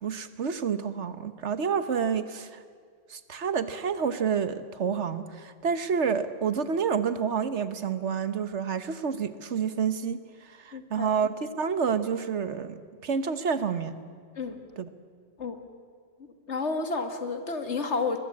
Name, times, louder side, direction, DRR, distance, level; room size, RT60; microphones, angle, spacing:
voice 1, 0.0-2.6 3.1-13.9 14.8-14.9, right 6 dB, 70° right, 12 dB, 1.4 m, -29 dB
voice 2, 10.7-11.1 14.4-14.6 15.4-15.6 16.5-18.2, left 4 dB, 70° left, 7 dB, 2.2 m, -30 dB
23.0 x 21.0 x 8.6 m, 2.1 s
omnidirectional pair, 1.2 m